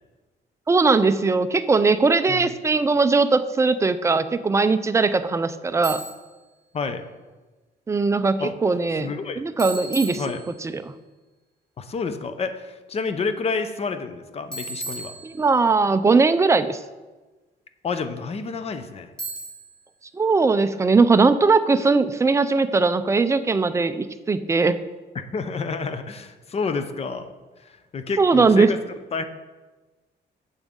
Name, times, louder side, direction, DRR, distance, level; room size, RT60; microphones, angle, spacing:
voice 1, 0.7-6.0 7.9-9.1 9.4-10.2 10.6-10.9 15.2-16.8 20.1-24.7 28.2-28.7, right 4 dB, 15° right, 11 dB, 0.4 m, -19 dB
Bicycle, 5.8-6.4 9.6-10.8 14.5-15.8 19.2-19.8, right 2 dB, 5° left, 2.9 m, -35 dB
voice 2, 6.7-7.0 8.4-8.5 8.9-9.4 10.2-10.4 11.8-15.1 17.8-19.1 25.1-27.3 27.6-28.8 29.1-29.2, left 4 dB, 35° left, 10 dB, 0.6 m, -29 dB
9.1 x 7.1 x 3.7 m, 1.2 s
cardioid pair, 130°, 18 cm